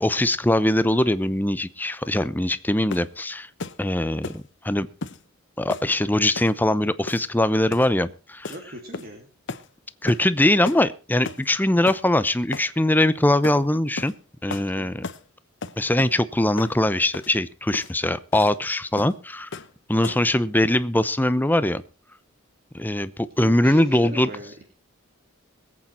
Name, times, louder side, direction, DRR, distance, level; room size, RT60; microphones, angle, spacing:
voice 1, 0.0-3.5 3.8-4.9 5.6-8.5 10.0-14.1 14.4-15.0 15.8-19.5 19.9-21.8 22.7-24.3, left 1 dB, 10° left, 14 dB, 0.7 m, -22 dB
sound 1, 2.9-3.1 3.6-3.8 4.2-4.4 5.0-5.2 5.7-5.9 6.3-6.5 7.1-7.4 7.7-7.9 8.4-8.6 8.9-9.2 9.5-9.7 10.1-10.3 10.6-10.8 11.2-11.5 11.8-12.0 12.5-12.7 13.4-13.6 14.0-14.2 14.5-14.7 15.0-15.2 15.6-16.2 16.6-16.8 17.1-17.3 17.7-17.9 18.3-18.5 19.0-19.2 19.5-19.7 20.0-20.3, left 3 dB, 60° left, 1.0 m, -35 dB
voice 2, 8.5-9.3 14.8-15.0 20.0-20.2 23.4-24.6, right 1 dB, 50° right, 3 dB, 2.4 m, -39 dB
22.0 x 8.6 x 4.3 m, 0.33 s
head